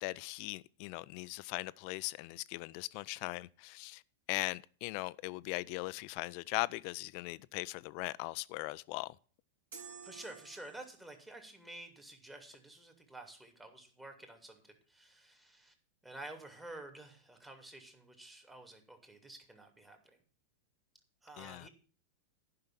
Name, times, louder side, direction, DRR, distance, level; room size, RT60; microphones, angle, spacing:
voice 1, 0.0-4.0 4.3-9.2 21.4-21.7, left 22 dB, 55° left, 0.4 m, -39 dB
sound 1, 9.7-11.2, right 6 dB, 80° right, 4.2 m, -52 dB
voice 2, 10.0-15.7 16.0-20.2 21.2-21.7, right 2 dB, 10° right, 2.6 m, -51 dB
10.5 x 5.7 x 7.5 m
hypercardioid pair, 110°, 0 cm